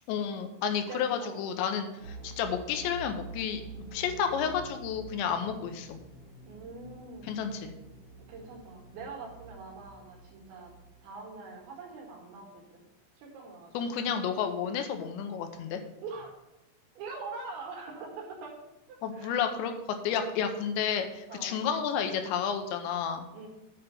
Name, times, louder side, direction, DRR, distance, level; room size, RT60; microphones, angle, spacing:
voice 1, 0.1-3.6 3.9-6.0 7.2-7.7 13.7-15.8 19.0-19.7 20.0-23.3, left 7 dB, 80° left, 7 dB, 3.1 m, -31 dB
voice 2, 0.9-1.4 5.4-5.7 6.5-7.3 8.3-10.7 11.0-12.8 13.2-13.9 16.0-16.3 17.0-18.6 18.9-19.3 21.3-21.6 23.3-23.5, right 4 dB, 80° right, 0 dB, 4.1 m, -43 dB
sound 1, 2.0-11.8, right 3 dB, 45° right, 1.3 m, -48 dB
8.7 x 5.6 x 6.6 m, 0.97 s
omnidirectional pair, 5.2 m